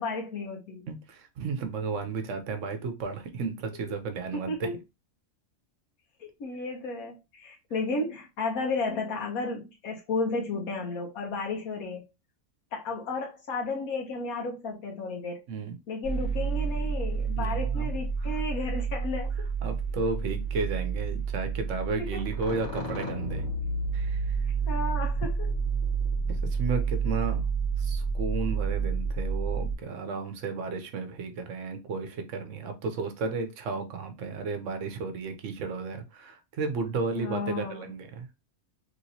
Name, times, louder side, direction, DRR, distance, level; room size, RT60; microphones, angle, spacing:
voice 1, 0.0-0.9 4.3-4.7 6.2-12.0 12.7-15.4 15.9-19.3 22.0-22.2 24.7-25.3 37.1-37.9, left 3 dB, 80° left, 1.3 m, -33 dB
voice 2, 0.9-4.7 15.5-15.8 17.4-18.4 19.6-23.4 23.9-24.4 26.2-27.4 27.8-38.3, right 4 dB, 65° right, 0.9 m, -33 dB
sound 1, 16.0-29.7, right 5 dB, 55° left, 1.3 m, -30 dB
3.2 x 2.9 x 2.7 m
omnidirectional pair, 1.5 m